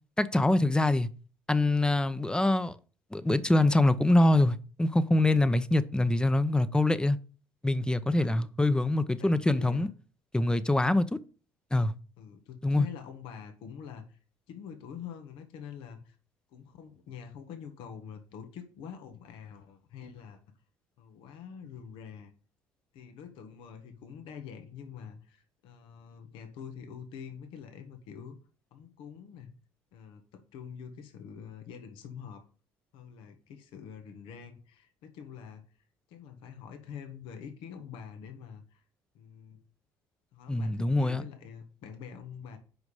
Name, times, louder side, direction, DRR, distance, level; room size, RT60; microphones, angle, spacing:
voice 1, 0.2-1.1 1.5-2.8 3.1-7.2 7.6-9.9 10.3-11.2 11.7-11.9 12.6-12.9 40.5-41.2, left 2 dB, 10° left, 0.8 m, -24 dB
voice 2, 8.2-8.5 9.2-9.9 12.2-14.2 14.5-16.2 16.5-20.4 21.0-22.3 22.9-28.4 28.7-29.5 29.9-32.4 32.9-35.6 36.1-38.8 39.1-39.6 40.3-42.6, left 7 dB, 75° left, 1.5 m, -46 dB
8.0 x 5.2 x 5.5 m
supercardioid pair, 70°, 9 cm